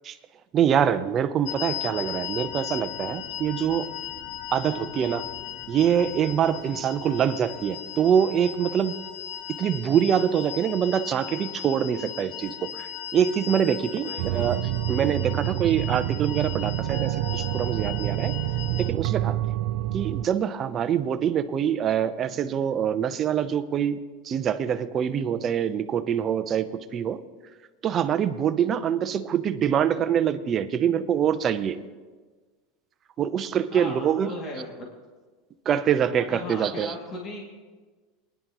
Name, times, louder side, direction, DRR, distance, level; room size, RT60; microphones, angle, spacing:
voice 1, 0.5-3.9 4.5-5.3 5.7-9.0 9.6-18.3 18.8-19.4 19.9-24.0 24.2-27.2 27.8-31.8 33.2-34.3 35.6-36.9, right 8 dB, 30° right, 10 dB, 0.7 m, -25 dB
sound 1, 1.4-18.9, left 11 dB, 55° left, 0.8 m, -37 dB
voice 2, 14.0-14.5 33.7-34.9 36.2-37.5, left 2 dB, 35° left, -2 dB, 2.5 m, -38 dB
sound 2, 14.2-20.3, right 15 dB, 65° right, 0.4 m, -28 dB
24.0 x 10.5 x 3.1 m, 1.4 s
supercardioid pair, 135°, 0 cm